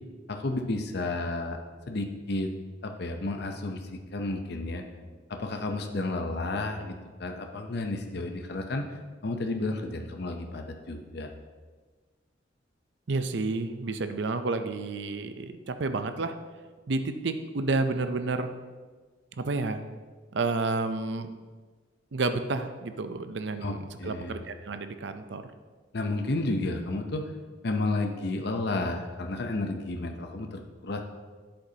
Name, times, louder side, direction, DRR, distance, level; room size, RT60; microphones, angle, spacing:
voice 1, 0.3-1.6 1.9-2.5 2.8-4.8 5.3-9.0 9.2-11.3 23.6-24.4 25.9-27.3 27.6-31.0, left 2 dB, 60° left, 4 dB, 0.7 m, -32 dB
voice 2, 13.1-16.4 16.9-18.5 19.4-19.8 20.3-21.3 22.1-25.4, right 3 dB, 65° right, 9 dB, 0.6 m, -30 dB
10.5 x 7.8 x 2.8 m, 1.4 s
head